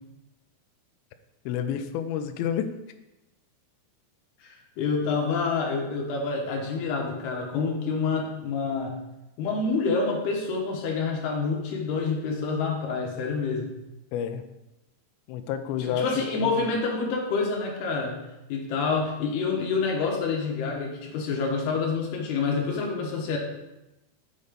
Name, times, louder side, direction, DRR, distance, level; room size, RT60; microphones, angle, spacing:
voice 1, 1.5-2.7 14.1-14.4 15.3-16.1 16.4-16.5, left 9 dB, 90° left, 8 dB, 2.2 m, -29 dB
voice 2, 4.4-9.0 9.4-13.7 15.8-18.2 18.5-23.4, left 4 dB, 70° left, 0 dB, 3.1 m, -27 dB
8.1 x 4.2 x 5.1 m, 0.96 s
omnidirectional pair, 4.9 m